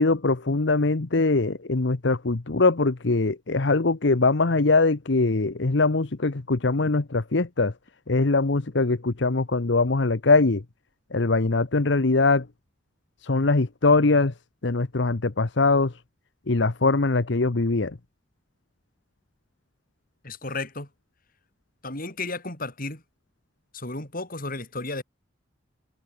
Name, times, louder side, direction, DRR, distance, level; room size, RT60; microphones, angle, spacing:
voice 1, 0.0-7.7 8.1-10.6 11.1-12.5 13.2-14.3 14.6-15.9 16.5-18.0, left 3 dB, 65° left, 1.0 m, -22 dB
voice 2, 20.2-20.9 21.8-23.0 23.7-25.0, left 2 dB, 45° left, 5.8 m, -33 dB
head